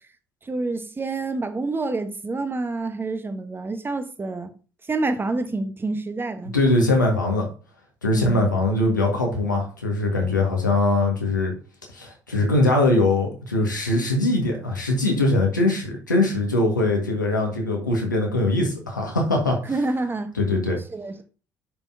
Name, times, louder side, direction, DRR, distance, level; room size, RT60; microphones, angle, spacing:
voice 1, 0.5-4.5 4.9-6.5 8.1-8.6 19.7-20.3 20.9-21.2, right 3 dB, 20° right, 1.1 m, -28 dB
voice 2, 6.4-7.5 8.0-11.5 11.9-19.8 20.4-20.8, left 2 dB, 85° left, 1.7 m, -22 dB
9.7 x 5.5 x 2.8 m
figure-of-eight pair, 55°, 10 cm